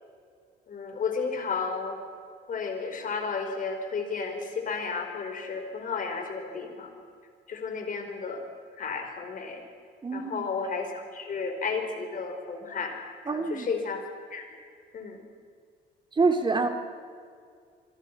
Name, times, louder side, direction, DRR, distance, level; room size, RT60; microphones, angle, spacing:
voice 1, 0.7-2.0 2.5-6.9 7.5-8.4 8.8-9.6 10.1-13.0 13.3-14.0 14.3-14.5 14.9-15.2, left 5 dB, 45° left, 5 dB, 4.9 m, -33 dB
voice 2, 10.0-10.5 13.3-13.7 16.1-16.7, right 4 dB, 25° right, 6 dB, 2.5 m, -26 dB
28.0 x 21.5 x 5.9 m, 2.2 s
cardioid pair, 110°, 19 cm